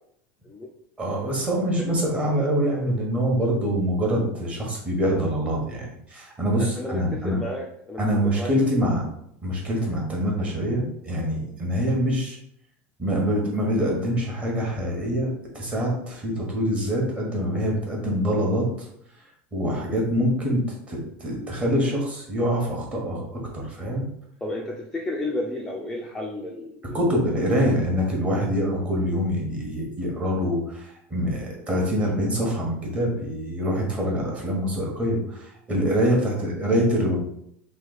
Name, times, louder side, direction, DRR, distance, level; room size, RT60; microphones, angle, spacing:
voice 1, 1.0-7.4 8.0-9.0 9.4-12.4 13.0-15.3 15.5-18.9 19.5-23.2 23.5-24.0 26.9-37.2, equal, 20° right, -2 dB, 1.2 m, -25 dB
voice 2, 6.6-8.5 24.4-27.4 36.0-36.4, left 1 dB, 5° left, -2 dB, 0.4 m, -33 dB
3.2 x 2.8 x 4.0 m, 0.73 s
supercardioid pair, 145°, 6 cm